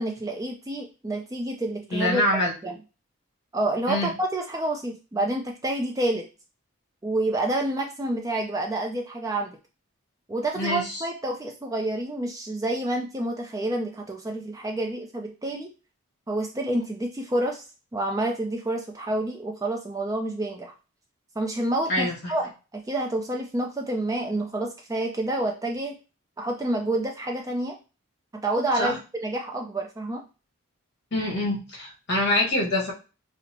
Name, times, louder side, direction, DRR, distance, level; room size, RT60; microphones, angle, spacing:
voice 1, 0.0-2.2 2.6-2.8 3.5-6.2 7.0-9.5 10.3-15.7 16.3-17.6 17.9-20.7 21.4-26.0 26.4-27.8 28.3-30.2, right 1 dB, 15° right, 1 dB, 0.4 m, -28 dB
voice 2, 1.9-2.5 3.9-4.1 10.5-11.0 21.9-22.3 28.7-28.9 31.1-32.9, left 1 dB, 50° left, -1 dB, 1.4 m, -25 dB
5.1 x 2.0 x 2.9 m, 0.32 s
head